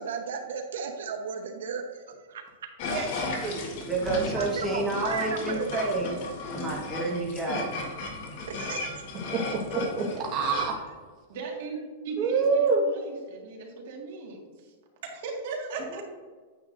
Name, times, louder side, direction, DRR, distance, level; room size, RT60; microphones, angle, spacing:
voice 1, 0.0-2.0 2.3-2.7 4.3-5.9 8.5-8.9, right 6 dB, 90° right, 4 dB, 1.0 m, -35 dB
sound 1, 2.8-10.7, left 3 dB, 45° left, 1.5 m, -35 dB
voice 2, 2.9-3.9 9.3-10.7 12.2-12.8 15.9-16.0, right 4 dB, 30° right, -2 dB, 1.6 m, -27 dB
voice 3, 3.9-6.1 6.5-7.6, right 2 dB, 5° right, -5 dB, 1.3 m, -29 dB
voice 4, 11.3-14.7 15.0-16.0, right 4 dB, 55° right, 0 dB, 1.9 m, -38 dB
9.4 x 8.3 x 2.6 m, 1.5 s
supercardioid pair, 170°, 0 cm